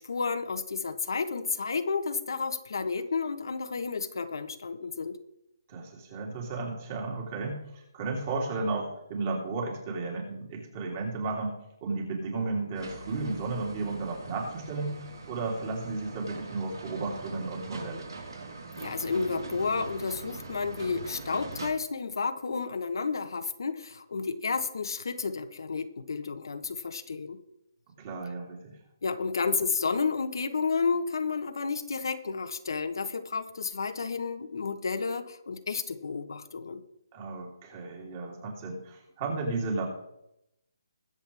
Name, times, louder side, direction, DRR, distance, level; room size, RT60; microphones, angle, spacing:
voice 1, 0.0-5.2 18.8-27.4 29.0-36.8, left 4 dB, 70° left, 8 dB, 1.2 m, -31 dB
voice 2, 5.7-11.5 11.8-18.1 28.0-28.8 37.1-39.8, right 3 dB, 30° right, -1 dB, 3.3 m, -34 dB
sound 1, 12.7-21.7, right 3 dB, 85° right, 4.2 m, -42 dB
21.5 x 8.0 x 3.5 m, 0.83 s
hypercardioid pair, 165°, 2 cm